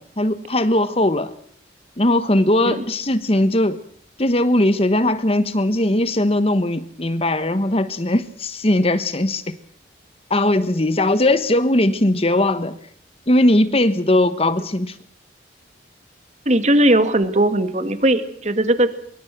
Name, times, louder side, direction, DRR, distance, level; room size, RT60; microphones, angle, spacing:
voice 1, 0.0-1.3 2.0-3.8 4.2-9.5 10.3-12.8 13.3-14.9, left 1 dB, 30° left, 12 dB, 1.2 m, -19 dB
voice 2, 16.5-18.9, right 1 dB, 35° right, 10 dB, 2.1 m, -18 dB
25.0 x 23.5 x 6.1 m, 0.62 s
head